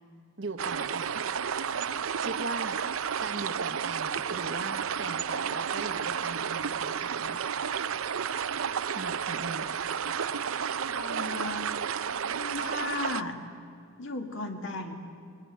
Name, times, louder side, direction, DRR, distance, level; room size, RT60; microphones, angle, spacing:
voice 1, 0.4-1.2 2.2-7.4 8.9-9.7, right 3 dB, 60° right, 9 dB, 1.1 m, -39 dB
sound 1, 0.6-13.2, right 7 dB, 75° right, 0.6 m, -32 dB
voice 2, 10.9-11.7 12.3-13.4 14.0-14.9, left 2 dB, 60° left, 5 dB, 2.1 m, -35 dB
20.5 x 20.0 x 9.2 m, 2.3 s
head